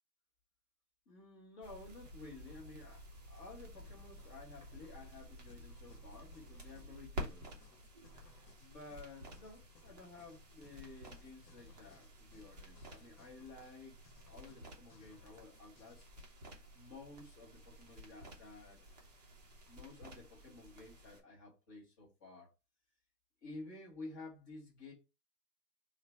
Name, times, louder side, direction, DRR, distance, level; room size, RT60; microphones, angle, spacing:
voice 1, 1.1-7.5 8.6-14.0 14.3-16.1 16.7-18.9 19.7-22.5 23.4-24.9, left 3 dB, 15° left, 0.6 m, -53 dB
sound 1, 1.6-21.2, equal, 25° right, 0.5 m, -52 dB
sound 2, 2.0-16.3, left 5 dB, 85° left, 0.8 m, -64 dB
3.2 x 2.1 x 3.9 m
hypercardioid pair, 145°, 48 cm